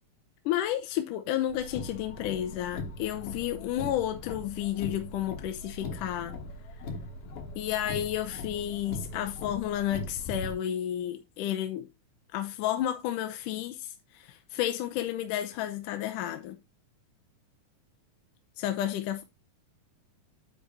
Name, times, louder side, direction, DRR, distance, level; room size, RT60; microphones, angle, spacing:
voice 1, 0.5-6.3 7.6-11.9 12.3-16.6 18.6-19.2, left 12 dB, 80° left, 2.2 m, -31 dB
Car, 1.5-10.5, left 2 dB, 55° left, 1.9 m, -40 dB
9.8 x 4.0 x 3.9 m
omnidirectional pair, 3.8 m